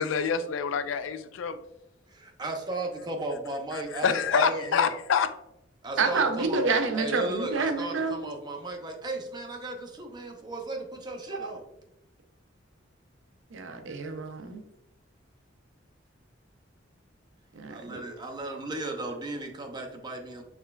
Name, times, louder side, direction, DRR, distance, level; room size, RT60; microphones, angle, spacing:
voice 1, 0.0-1.6 3.7-5.3, left 6 dB, 80° left, 12 dB, 0.3 m, -26 dB
voice 2, 2.1-4.9 5.8-6.6 6.9-11.6 14.3-14.5 17.7-20.4, right 2 dB, 20° right, 2 dB, 0.6 m, -35 dB
voice 3, 6.0-8.3 11.4-11.5 13.5-14.6 17.5-18.0, right 4 dB, 80° right, 6 dB, 0.6 m, -28 dB
6.1 x 3.3 x 2.3 m, 0.85 s
head